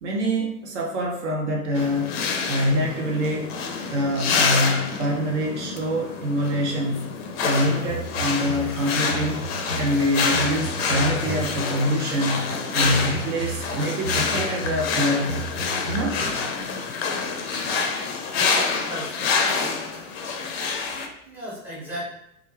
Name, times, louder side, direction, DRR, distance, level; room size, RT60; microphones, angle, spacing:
voice 1, 0.0-2.2 2.4-7.1 7.4-9.4 9.7-12.5 12.7-15.5 15.9-16.2, equal, 50° right, 0 dB, 0.6 m, -25 dB
sound 1, 1.7-21.1, left 5 dB, 45° left, 0.4 m, -27 dB
sound 2, 7.5-11.8 12.4-16.7, right 2 dB, 85° right, 1.3 m, -34 dB
voice 2, 18.9-19.9 20.3-20.4 21.3-22.0, equal, 5° right, -6 dB, 0.6 m, -37 dB
2.3 x 2.1 x 3.0 m, 0.78 s
figure-of-eight pair, 95°, 44 cm